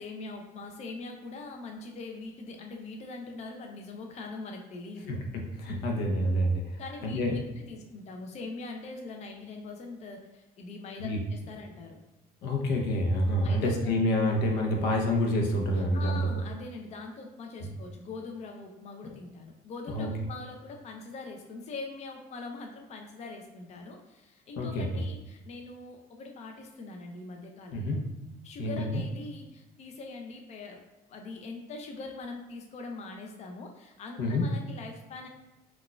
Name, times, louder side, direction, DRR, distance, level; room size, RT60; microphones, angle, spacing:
voice 1, 0.0-5.2 6.8-12.0 13.4-14.0 15.8-28.0 28.4-30.8 31.1-35.3, left 3 dB, 40° left, 2 dB, 0.4 m, -42 dB
voice 2, 5.6-6.6 7.0-7.4 11.0-11.2 12.4-16.2 17.6-17.7 19.9-20.1 24.6-25.0 27.7-28.0 28.6-29.0 34.2-34.4, left 1 dB, 85° left, 1 dB, 0.6 m, -27 dB
3.9 x 2.3 x 2.2 m, 1.0 s
cardioid pair, 110°, 17 cm